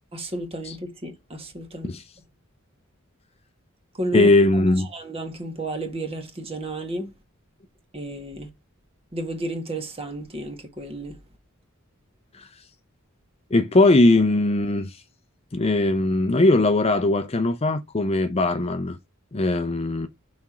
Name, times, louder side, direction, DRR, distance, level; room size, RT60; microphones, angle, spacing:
voice 1, 0.1-1.9 3.9-4.3 4.8-7.1 7.9-8.5 9.1-11.2, right 1 dB, 25° right, 1.7 m, -32 dB
voice 2, 4.1-4.9 12.4-12.5 13.5-15.0 15.5-19.0 19.3-20.1, left 2 dB, 30° left, 0.6 m, -20 dB
6.0 x 4.3 x 6.0 m
head